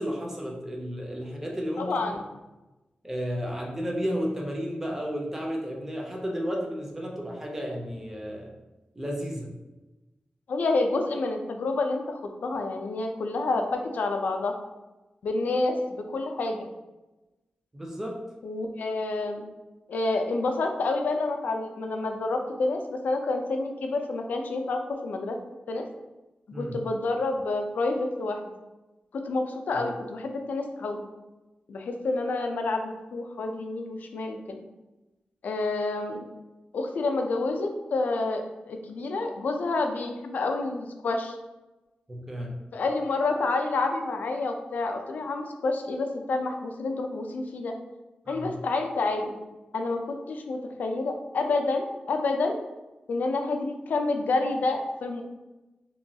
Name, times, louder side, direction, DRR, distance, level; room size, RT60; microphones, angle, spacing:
voice 1, 0.0-1.9 3.0-8.5 9.0-9.5 17.7-18.2 26.5-26.8 42.1-42.5 48.3-48.5, equal, 15° right, -1 dB, 0.5 m, -32 dB
voice 2, 1.8-2.2 10.5-14.6 15.2-16.7 18.4-19.4 19.9-25.4 25.7-25.9 26.5-28.4 29.1-31.1 31.7-34.6 35.4-36.2 36.7-41.4 42.7-47.7 48.3-49.4 49.7-52.5 53.1-55.2, left 3 dB, 75° left, 4 dB, 0.3 m, -28 dB
2.9 x 2.3 x 2.6 m, 1.1 s
wide cardioid pair, 165°, 3 cm